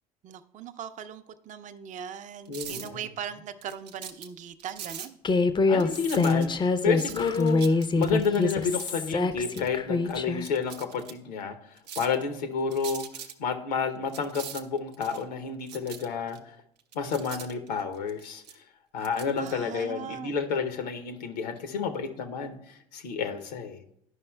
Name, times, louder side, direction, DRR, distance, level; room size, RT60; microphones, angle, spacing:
voice 1, 0.2-5.2 19.4-20.4, right 8 dB, 35° right, 9 dB, 0.4 m, -40 dB
voice 2, 2.5-3.0 5.7-13.0 13.4-16.4 16.9-18.4 18.9-23.8, left 5 dB, 80° left, 8 dB, 0.7 m, -30 dB
sound 1, 2.5-3.0 3.6-4.3 4.6-5.1 5.7-6.7 7.0-8.9 9.5-9.7 10.1-10.2 10.4-11.1 11.8-12.2 12.7-13.3 14.1-15.2 15.7-16.4 16.8-18.6 19.0-19.5, right 8 dB, 85° right, 0.5 m, -42 dB
Human voice, 5.2-10.5, left 3 dB, 25° left, 0.4 m, -25 dB
11.5 x 5.3 x 2.2 m, 0.71 s
hypercardioid pair, 65°, 21 cm